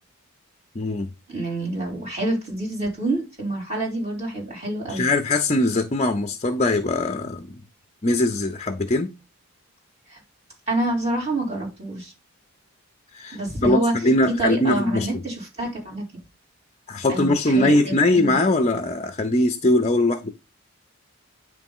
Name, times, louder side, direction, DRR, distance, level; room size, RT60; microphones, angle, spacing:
voice 1, 0.8-1.1 4.9-7.6 8.0-9.1 13.1-15.1 16.9-20.3, left 2 dB, 30° left, 0.5 m, -21 dB
voice 2, 1.3-5.0 10.1-10.2 10.7-12.1 13.3-14.1 14.4-16.0 17.1-18.4, right 2 dB, 30° right, 3.3 m, -27 dB
9.5 x 3.2 x 5.4 m
head